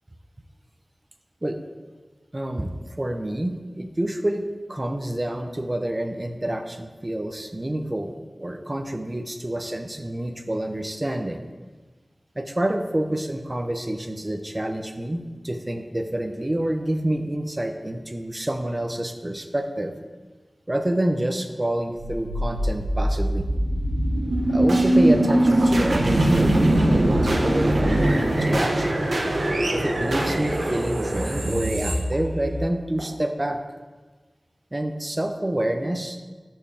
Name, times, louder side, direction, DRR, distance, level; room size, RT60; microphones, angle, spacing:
voice 1, 2.3-8.1 8.4-11.4 12.4-19.9 20.7-23.5 24.5-29.0 29.7-33.6 34.7-36.2, right 1 dB, 25° right, 6 dB, 0.7 m, -28 dB
sound 1, 22.0-33.0, right 1 dB, 80° right, 1.0 m, -22 dB
13.0 x 4.5 x 3.5 m, 1.4 s
wide cardioid pair, 70°, 0 cm